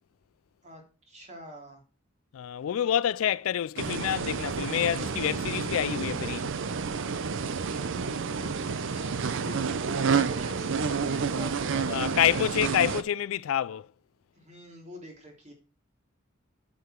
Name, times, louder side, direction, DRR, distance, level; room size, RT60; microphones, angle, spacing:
voice 1, 1.1-1.8 7.4-12.5 14.3-15.5, equal, 35° right, 3.1 m, -45 dB
voice 2, 2.3-6.5 11.9-13.9, left 10 dB, 70° left, 0.3 m, -27 dB
sound 1, 3.8-13.0, right 5 dB, 65° right, 0.6 m, -30 dB
8.2 x 6.8 x 4.4 m
head